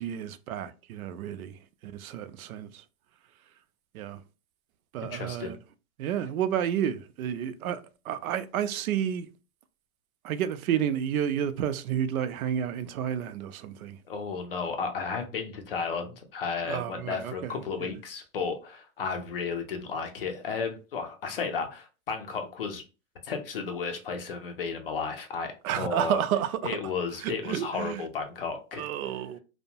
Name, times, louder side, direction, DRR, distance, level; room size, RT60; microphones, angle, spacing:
voice 1, 0.0-1.5 1.8-2.7 3.9-4.2 4.9-5.6 6.0-9.3 10.2-14.0 16.7-17.5 17.8-17.9 25.6-26.8 27.2-28.0 28.8-29.4, right 9 dB, 85° right, 0.5 m, -30 dB
voice 2, 5.0-5.5 14.1-22.8 23.2-26.2 26.6-28.9, left 5 dB, 45° left, 0.4 m, -33 dB
2.6 x 2.1 x 2.7 m
supercardioid pair, 180°, 41 cm